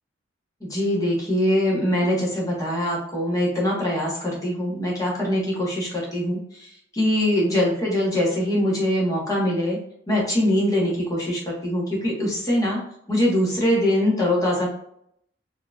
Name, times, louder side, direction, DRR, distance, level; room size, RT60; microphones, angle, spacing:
voice 1, 0.6-9.8 10.1-12.8 13.1-14.7, left 1 dB, 20° left, -4 dB, 1.2 m, -23 dB
4.6 x 3.0 x 2.4 m, 0.71 s
head